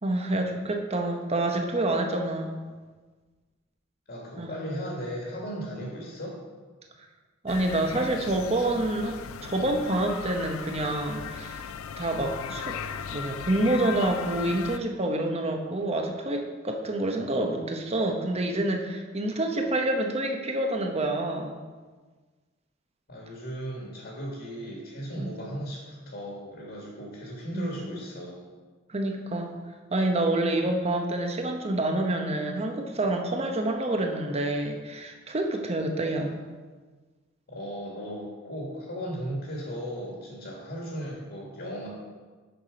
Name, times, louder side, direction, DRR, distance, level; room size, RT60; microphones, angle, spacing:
voice 1, 0.0-2.6 4.4-4.5 7.4-12.8 13.1-21.6 25.2-25.3 27.5-27.7 28.9-29.6 29.9-36.4, right 1 dB, 30° right, 3 dB, 0.8 m, -28 dB
voice 2, 4.1-6.4 23.1-28.4 37.5-41.9, equal, 55° left, -3 dB, 1.8 m, -36 dB
sound 1, 7.5-14.8, left 7 dB, 80° left, 0.4 m, -37 dB
6.9 x 5.9 x 5.0 m, 1.4 s
head